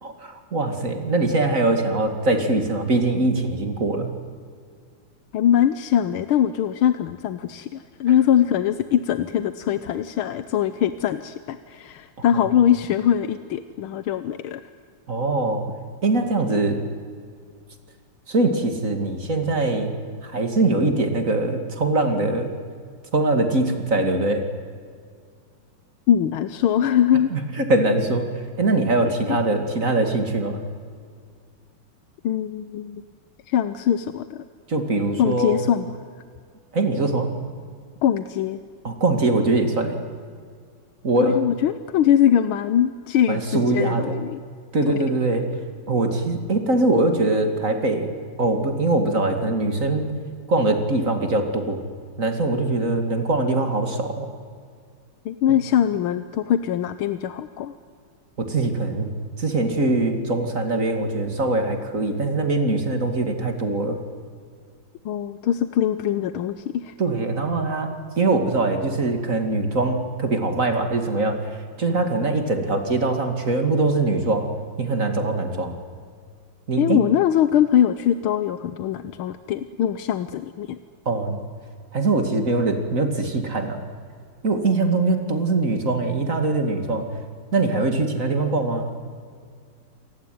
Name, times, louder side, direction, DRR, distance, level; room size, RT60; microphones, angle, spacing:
voice 1, 0.0-4.1 12.4-12.5 15.1-15.6 16.0-16.8 18.3-19.9 20.2-22.5 23.1-24.4 27.3-27.4 27.7-28.3 28.6-30.6 34.7-35.6 36.7-37.3 38.8-40.0 41.0-41.4 43.3-44.1 44.7-45.5 45.9-48.1 48.4-50.1 50.5-51.8 52.2-54.3 58.4-59.1 59.4-64.0 67.0-67.9 68.2-71.4 71.8-74.5 74.8-75.7 76.7-77.0 81.1-81.4 81.9-83.8 84.4-87.1 87.5-88.9, right 2 dB, 40° right, 6 dB, 2.7 m, -22 dB
voice 2, 5.3-14.6 26.1-27.3 29.0-29.4 32.2-33.0 33.5-34.4 35.2-36.0 38.0-38.6 41.2-44.4 44.9-45.0 55.3-57.7 65.1-66.9 76.8-80.8, left 10 dB, 85° left, 11 dB, 1.7 m, -22 dB
28.5 x 19.0 x 9.4 m, 2.1 s
omnidirectional pair, 2.3 m